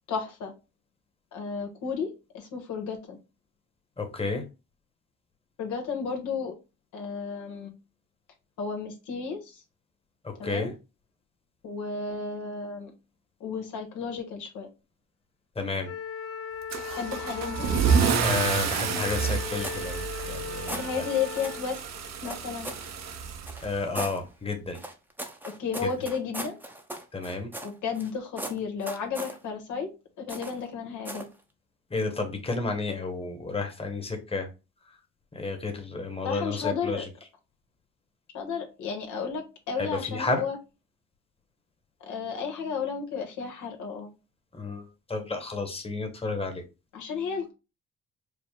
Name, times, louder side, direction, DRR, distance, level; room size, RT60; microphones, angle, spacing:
voice 1, 0.1-0.5 1.3-3.2 5.6-6.5 6.9-7.7 8.6-9.6 10.4-10.7 11.6-12.9 13.4-14.7 16.9-17.7 20.6-21.9 22.2-22.7 25.4-26.6 27.6-29.9 30.2-31.3 36.2-37.0 38.3-40.6 42.0-44.1 46.9-47.5, left 5 dB, 80° left, 2 dB, 1.2 m, -33 dB
voice 2, 4.0-4.4 10.2-10.7 15.5-15.9 18.2-21.0 23.6-24.8 27.1-27.5 31.9-34.5 35.3-37.1 39.8-40.4 44.5-46.6, left 3 dB, 20° left, 4 dB, 1.2 m, -31 dB
Wind instrument woodwind instrument, 15.8-21.7, left 7 dB, 50° left, 1.8 m, -37 dB
Car / Engine starting / Accelerating revving vroom, 16.7-24.0, right 6 dB, 60° right, 0.7 m, -29 dB
sound 1, 19.1-19.8 20.1-20.9 21.3-21.6 22.2-22.9 23.5-24.2 24.7-28.1 28.4-29.4 30.3-30.6 31.0-31.3, right 1 dB, 5° right, 0.7 m, -38 dB
4.8 x 2.0 x 3.6 m, 0.29 s
cardioid pair, 90°, 30 cm